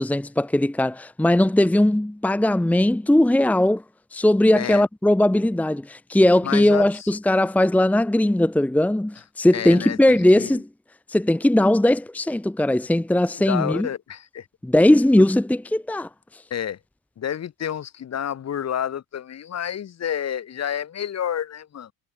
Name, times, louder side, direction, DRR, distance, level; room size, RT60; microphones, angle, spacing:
voice 1, 0.0-3.8 4.1-10.7 11.1-13.9 14.6-16.1, left 1 dB, 5° left, 1.3 m, -19 dB
voice 2, 6.4-7.1 9.5-10.6 13.3-14.5 15.2-15.3 16.5-16.8 17.2-21.9, left 9 dB, 35° left, 2.2 m, -30 dB
cardioid pair, 170°, 45 cm